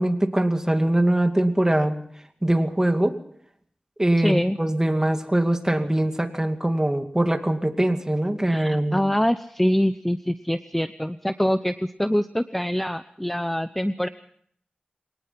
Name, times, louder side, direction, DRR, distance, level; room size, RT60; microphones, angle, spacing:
voice 1, 0.0-2.0 2.4-3.2 4.0-9.0, right 1 dB, 20° right, 6 dB, 2.5 m, -22 dB
voice 2, 4.2-4.6 8.4-14.1, equal, 5° left, 11 dB, 0.8 m, -24 dB
23.0 x 19.0 x 5.9 m, 0.63 s
wide cardioid pair, 60°, 3 cm